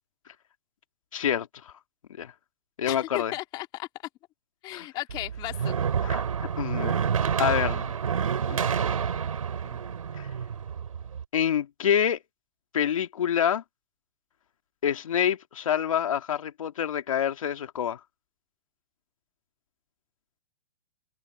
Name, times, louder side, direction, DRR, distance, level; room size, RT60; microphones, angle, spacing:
voice 1, 1.1-1.7 2.2-2.3 2.8-3.3 4.7-4.9 6.0-7.0 7.4-7.9 8.5-8.8 9.6-9.8 10.2-10.3 11.3-12.2 12.7-13.6 14.8-18.0, left 9 dB, 70° left, 2.4 m, -27 dB
voice 2, 2.9-3.9 4.6-5.8, left 17 dB, 25° left, 2.4 m, -35 dB
sound 1, 5.1-11.2, right 7 dB, 85° right, 5.6 m, -28 dB
hypercardioid pair, 155°, 17 cm